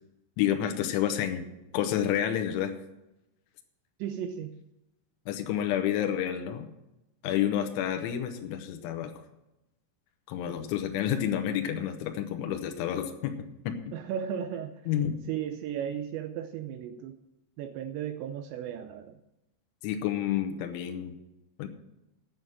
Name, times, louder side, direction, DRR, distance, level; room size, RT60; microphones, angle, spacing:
voice 1, 0.4-1.5 1.7-2.7 5.3-6.7 7.2-9.1 10.3-13.4 13.6-13.8 14.9-15.2 19.8-21.2 21.6-21.7, left 10 dB, 75° left, 5 dB, 3.3 m, -29 dB
voice 2, 4.0-4.6 13.9-14.8 15.3-17.2 17.6-19.2, right 9 dB, 85° right, 8 dB, 2.6 m, -35 dB
9.3 x 8.1 x 8.8 m, 0.93 s
omnidirectional pair, 5.7 m